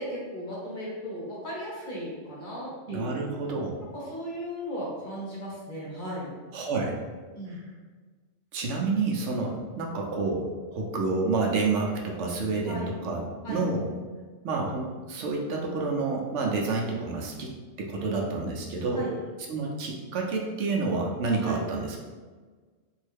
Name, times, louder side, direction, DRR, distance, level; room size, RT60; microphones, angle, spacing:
voice 1, 0.0-3.3 3.9-6.4 7.3-7.7 12.7-12.9 13.4-13.6 16.5-16.7 18.9-19.1 21.4-21.6, equal, 45° left, -6 dB, 1.1 m, -36 dB
voice 2, 2.9-3.8 6.5-7.0 8.5-13.9 14.4-17.5 17.8-19.0 19.5-22.0, right 3 dB, 80° right, 0 dB, 1.0 m, -29 dB
3.1 x 2.7 x 3.3 m, 1.4 s
omnidirectional pair, 1.2 m